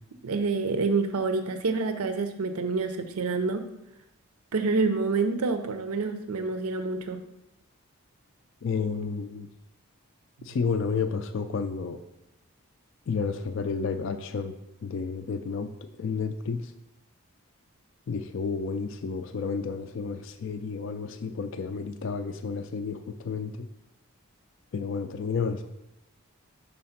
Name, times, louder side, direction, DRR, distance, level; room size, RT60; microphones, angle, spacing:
voice 1, 0.2-3.6 4.5-7.2, right 4 dB, 85° right, 8 dB, 0.5 m, -27 dB
voice 2, 8.6-9.5 10.4-12.0 13.1-15.7 16.0-16.7 18.1-23.7 24.7-25.6, left 5 dB, 55° left, 8 dB, 0.3 m, -31 dB
5.5 x 4.2 x 5.6 m, 0.89 s
head